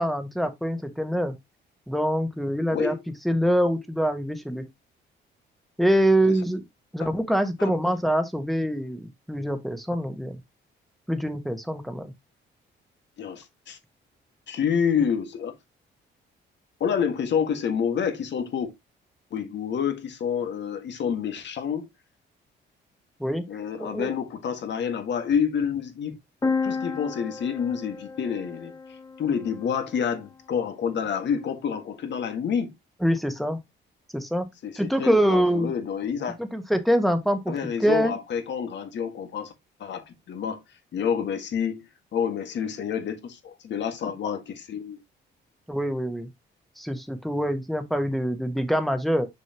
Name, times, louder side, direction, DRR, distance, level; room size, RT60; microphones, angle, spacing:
voice 1, 0.0-1.3 1.9-2.9 3.2-4.6 5.8-6.6 6.9-10.4 11.1-12.1 23.2-23.4 23.8-24.1 33.0-33.6 34.1-34.5 34.7-35.7 36.4-37.5 37.8-38.2 45.7-46.3 46.8-49.3, equal, ahead, 1.4 m, -24 dB
voice 2, 2.7-3.0 7.0-7.1 7.6-7.7 13.2-13.8 14.5-15.5 16.8-18.7 19.3-21.9 23.5-26.1 26.6-28.8 29.2-32.7 34.6-36.4 37.5-39.5 39.8-40.6 40.9-45.0, left 7 dB, 65° left, 1.8 m, -28 dB
sound 1, 26.4-30.2, left 4 dB, 15° left, 0.8 m, -32 dB
6.5 x 5.4 x 2.9 m
cardioid pair, 90°, 20 cm